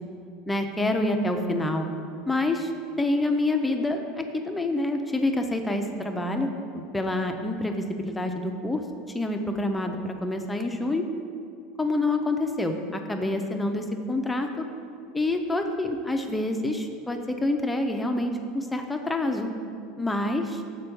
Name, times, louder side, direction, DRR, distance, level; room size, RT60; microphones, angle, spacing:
voice 1, 0.5-1.9 2.3-2.7 3.0-8.8 9.1-11.0 11.8-14.6 15.1-19.5 20.0-20.6, left 2 dB, 5° left, 5 dB, 0.4 m, -27 dB
6.8 x 4.4 x 5.6 m, 2.5 s
supercardioid pair, 165°, 0 cm